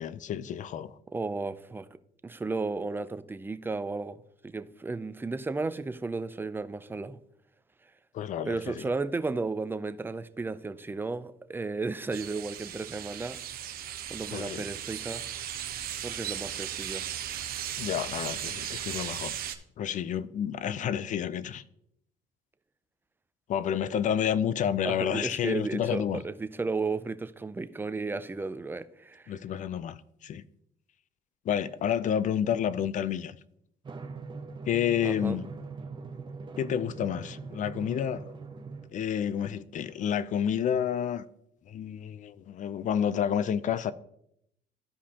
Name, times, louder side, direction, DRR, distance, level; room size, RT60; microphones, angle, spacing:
voice 1, 0.0-0.9 8.1-8.9 14.3-14.6 17.8-19.3 19.8-21.6 23.5-26.2 29.3-30.4 31.5-33.4 34.7-35.5 36.6-38.2 38.9-41.2 41.7-43.9, left 9 dB, 50° left, 0.4 m, -30 dB
voice 2, 1.1-2.0 2.2-7.2 8.4-13.4 14.1-15.2 16.0-17.1 24.9-29.4 35.0-35.4, right 3 dB, 10° right, 0.4 m, -34 dB
sound 1, 12.1-19.6, right 10 dB, 60° right, 0.7 m, -37 dB
Drum, 33.8-38.9, right 4 dB, 30° right, 1.0 m, -42 dB
13.5 x 5.0 x 2.8 m
cardioid pair, 110°, 17 cm